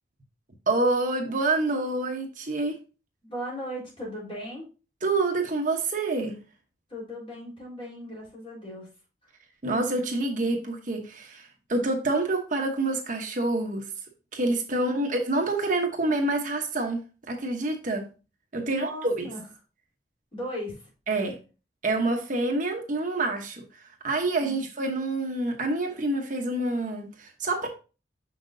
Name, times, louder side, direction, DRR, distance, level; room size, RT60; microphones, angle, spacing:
voice 1, 0.7-2.8 5.0-6.4 9.6-13.9 14.3-17.0 17.3-18.1 18.5-19.3 21.1-21.4 21.8-27.7, right 2 dB, 45° right, 1.0 m, -27 dB
voice 2, 3.2-4.6 6.9-8.9 14.7-15.0 18.6-19.4 20.3-20.9 24.4-24.7, equal, 30° left, 3.7 m, -37 dB
6.3 x 5.8 x 2.6 m
head